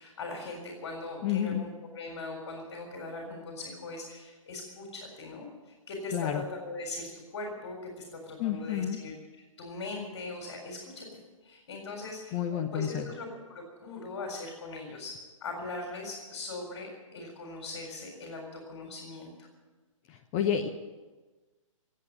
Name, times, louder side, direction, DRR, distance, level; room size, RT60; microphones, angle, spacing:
voice 1, 0.0-1.7 2.0-9.1 9.6-15.2 15.4-19.5, left 2 dB, 45° left, 1 dB, 3.9 m, -40 dB
voice 2, 1.2-1.6 6.1-6.4 8.4-9.0 12.3-13.0 20.1-20.7, left 9 dB, 25° left, 5 dB, 0.9 m, -30 dB
17.0 x 8.4 x 9.9 m, 1.3 s
figure-of-eight pair, 125°, 17 cm